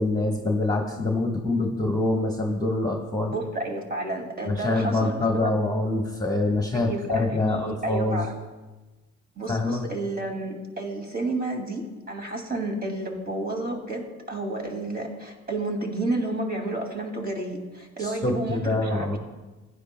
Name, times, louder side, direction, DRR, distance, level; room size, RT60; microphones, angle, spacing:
voice 1, 0.0-3.3 4.4-8.3 9.5-9.8 18.0-19.2, left 2 dB, 10° left, 1 dB, 1.3 m, -25 dB
voice 2, 3.3-5.6 6.7-8.3 9.4-19.2, right 2 dB, 30° right, 3 dB, 2.4 m, -31 dB
15.5 x 10.0 x 2.2 m, 1.2 s
hypercardioid pair, 55°, 32 cm